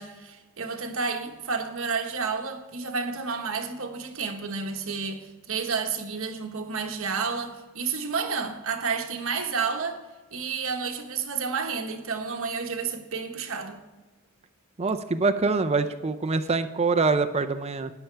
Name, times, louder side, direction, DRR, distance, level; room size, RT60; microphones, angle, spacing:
voice 1, 0.0-10.0 10.3-13.8, right 5 dB, 65° right, 1.3 m, -30 dB
voice 2, 14.8-17.9, right 3 dB, 30° right, 0.5 m, -25 dB
13.0 x 10.0 x 3.4 m
head